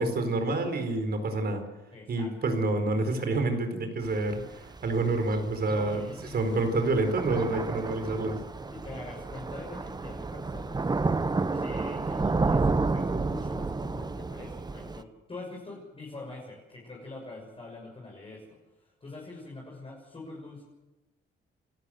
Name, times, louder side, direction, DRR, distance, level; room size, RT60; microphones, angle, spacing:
voice 1, 0.0-1.6 2.1-6.0 6.3-8.4, right 2 dB, 55° right, 7 dB, 4.6 m, -28 dB
voice 2, 1.9-2.3 5.6-6.6 8.7-10.8 11.5-20.6, left 3 dB, 30° left, -2 dB, 6.6 m, -44 dB
Thunder / Rain, 4.0-15.0, right 3 dB, 20° right, 1.0 m, -31 dB
29.0 x 13.5 x 7.9 m, 1.1 s
cardioid pair, 90°, 20 cm